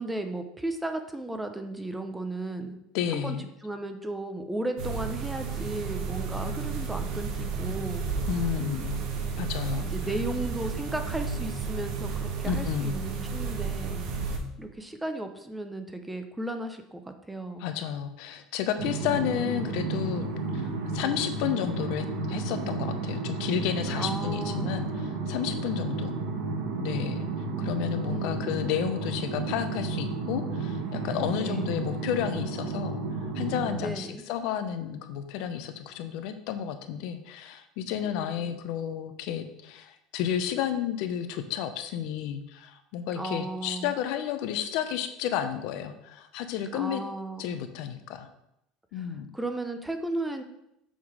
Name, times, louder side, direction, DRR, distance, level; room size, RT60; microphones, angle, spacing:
voice 1, 0.0-2.8 3.1-3.4 3.6-8.1 9.8-14.1 14.6-17.7 23.9-24.8 28.0-28.6 31.3-31.7 33.8-34.2 38.0-38.6 43.2-43.9 46.7-47.5 48.9-49.1 49.3-50.4, right 2 dB, 5° right, 7 dB, 0.6 m, -35 dB
voice 2, 2.9-3.4 8.3-9.0 9.4-9.9 12.4-13.0 17.6-20.3 20.5-26.2 26.8-27.3 27.6-33.0 33.3-47.0 47.4-48.3 48.9-49.3, left 9 dB, 70° left, 8 dB, 0.7 m, -32 dB
sound 1, 4.8-14.4, right 5 dB, 60° right, 1.1 m, -32 dB
sound 2, 18.8-33.8, right 3 dB, 80° right, 1.5 m, -32 dB
7.3 x 3.8 x 4.8 m, 0.80 s
cardioid pair, 140°, 0 cm